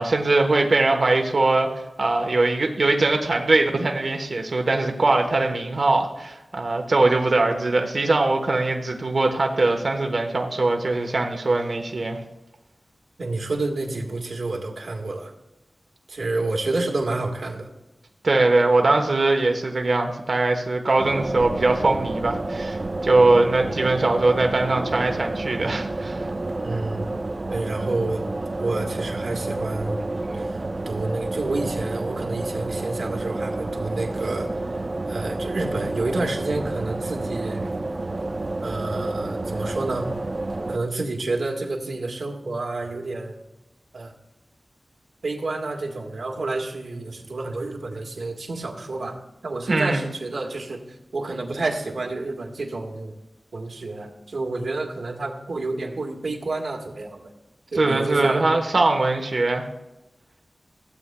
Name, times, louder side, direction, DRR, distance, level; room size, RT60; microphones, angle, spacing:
voice 1, 0.0-12.2 18.2-26.3 49.7-50.1 57.7-59.6, right 2 dB, 60° right, 3 dB, 1.1 m, -21 dB
voice 2, 13.2-15.3 16.1-17.7 26.6-27.0 27.5-28.2 28.6-30.0 30.4-34.7 35.1-37.6 38.6-40.1 40.7-43.4 43.9-44.1 45.2-49.2 49.4-50.8 51.1-53.1 53.5-57.3 57.7-58.4, right 2 dB, 80° right, 1 dB, 1.5 m, -29 dB
sound 1, 21.0-40.8, right 2 dB, 40° right, 0.5 m, -30 dB
16.0 x 8.2 x 2.3 m, 0.98 s
wide cardioid pair, 95°, 0 cm